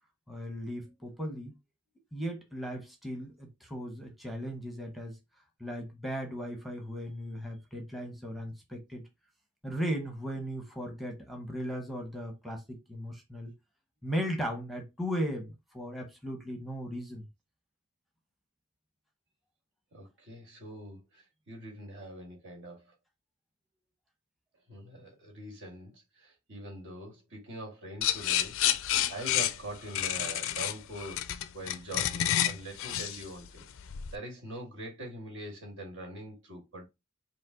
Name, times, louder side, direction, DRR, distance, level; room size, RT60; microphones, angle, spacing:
voice 1, 0.3-1.5 2.1-5.2 5.6-9.1 9.6-13.5 14.0-17.3, equal, ahead, 0.9 m, -37 dB
voice 2, 19.9-22.9 24.7-28.6 29.1-33.7 34.1-36.9, right 1 dB, 60° right, 1.8 m, -43 dB
sound 1, 28.0-34.1, left 11 dB, 65° left, 0.4 m, -30 dB
5.2 x 2.1 x 3.7 m
head